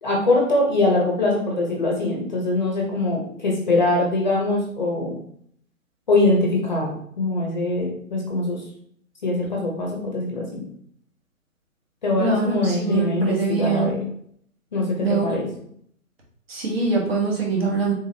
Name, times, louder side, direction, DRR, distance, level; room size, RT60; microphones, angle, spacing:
voice 1, 0.0-5.2 6.1-8.6 9.2-10.6 12.0-14.0 14.7-15.5, left 2 dB, 30° left, -1 dB, 0.8 m, -22 dB
voice 2, 12.2-13.9 15.0-15.4 16.5-17.9, right 4 dB, 45° right, -3 dB, 1.3 m, -23 dB
3.6 x 3.4 x 2.7 m, 0.65 s
figure-of-eight pair, 145°, 43 cm